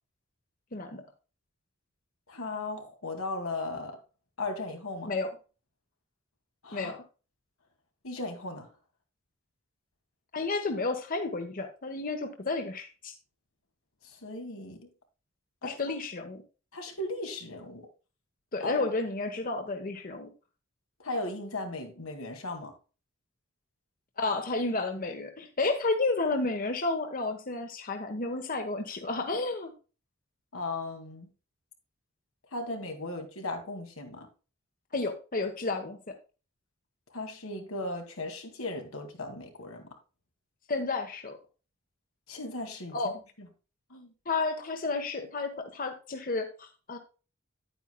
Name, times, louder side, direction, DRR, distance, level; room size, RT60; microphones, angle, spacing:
voice 1, 0.7-1.0 5.0-5.3 6.7-7.0 10.3-13.1 15.6-16.4 18.5-20.3 24.2-29.7 34.9-36.1 40.7-41.4 42.9-43.2 44.3-47.0, left 3 dB, 40° left, 1.1 m, -31 dB
voice 2, 2.3-4.0 4.4-5.1 6.6-6.9 8.0-8.7 14.0-14.9 15.6-16.0 16.7-17.9 18.6-18.9 21.0-22.7 30.5-31.3 32.5-34.3 37.1-39.8 42.3-43.5 43.9-44.1, left 2 dB, 90° left, 2.3 m, -37 dB
9.9 x 9.1 x 2.2 m
head